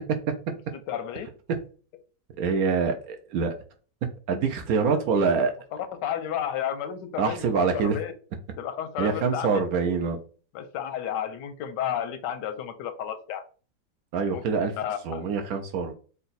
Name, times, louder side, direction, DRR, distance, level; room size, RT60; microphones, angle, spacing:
voice 1, 0.9-1.4 6.0-8.1 8.6-9.5 10.5-13.4 14.3-14.4 14.8-15.2, left 9 dB, 90° left, 1.3 m, -32 dB
voice 2, 2.4-3.6 4.3-5.5 7.2-8.0 9.0-10.2 14.1-14.7 15.0-15.9, right 5 dB, 70° right, 1.0 m, -25 dB
3.9 x 2.3 x 3.9 m
omnidirectional pair, 1.8 m